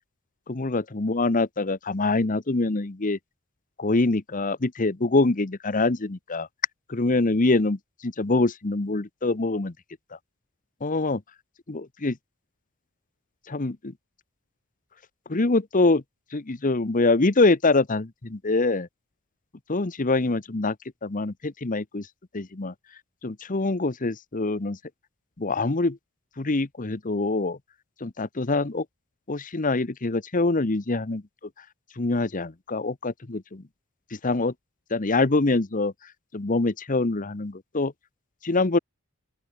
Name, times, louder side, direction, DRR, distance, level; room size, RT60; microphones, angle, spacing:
voice 1, 0.5-3.2 3.8-6.5 6.9-9.7 10.8-11.2 11.7-12.1 13.5-13.9 15.3-16.0 16.3-18.9 19.7-20.7 21.0-22.1 22.3-22.7 23.2-24.8 25.4-26.0 26.4-27.6 28.0-28.8 29.3-31.2 32.0-33.6 34.2-34.5 34.9-35.9 36.3-37.9 38.4-38.8, left 3 dB, 40° left, 0.9 m, -24 dB
open air
head